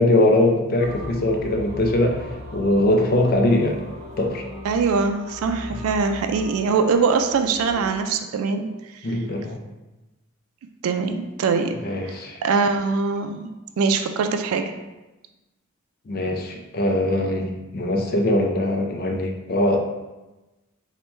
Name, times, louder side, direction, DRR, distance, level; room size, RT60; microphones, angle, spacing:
voice 1, 0.0-2.2 2.5-3.8 4.2-4.4 9.0-9.6 11.8-12.4 16.1-19.8, left 1 dB, 45° left, 3 dB, 0.4 m, -21 dB
sound 1, 0.8-7.9, left 1 dB, 45° right, 0.9 m, -38 dB
voice 2, 4.6-8.7 10.8-11.8 12.0-12.2 12.4-13.5 13.8-14.8, right 4 dB, 75° right, 6 dB, 0.3 m, -22 dB
4.4 x 2.1 x 3.2 m, 1.1 s
head